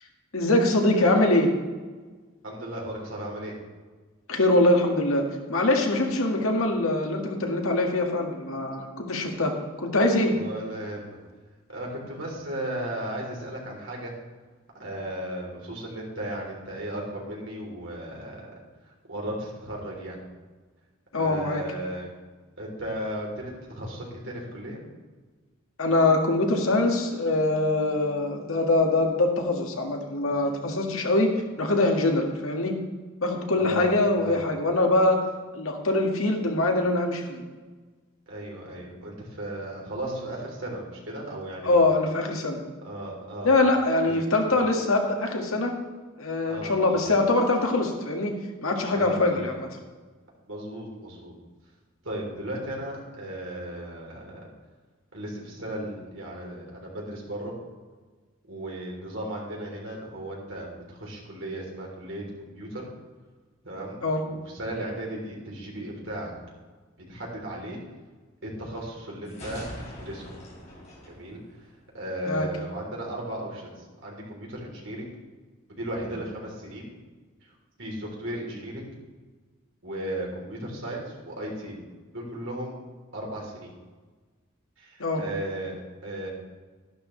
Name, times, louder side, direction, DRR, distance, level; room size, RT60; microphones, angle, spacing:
voice 1, 0.3-1.5 4.3-9.5 9.8-10.3 21.1-21.6 25.8-31.3 31.6-32.7 33.2-35.3 35.5-37.4 41.6-42.6 43.4-45.8 46.2-49.7 64.0-64.2 72.3-72.5 85.0-85.2, left 2 dB, 80° left, 2 dB, 1.7 m, -23 dB
voice 2, 2.4-3.6 10.3-11.2 11.7-14.1 14.8-18.5 18.8-20.2 21.1-22.1 22.6-24.8 33.6-33.9 34.2-34.4 38.3-41.8 42.8-43.5 44.0-44.6 46.5-47.1 48.9-49.6 50.5-51.3 52.0-54.4 55.1-57.5 58.5-62.9 63.6-64.0 64.2-66.3 67.1-67.8 68.4-70.3 71.1-71.4 71.9-75.1 75.7-76.9 77.8-78.9 79.8-81.8 82.1-82.7 83.1-83.7 84.8-85.8 86.0-86.3, right 1 dB, 60° right, -2 dB, 3.5 m, -35 dB
sound 1, 69.3-72.1, equal, 30° left, 3.3 m, -43 dB
12.0 x 11.5 x 3.3 m, 1.4 s
head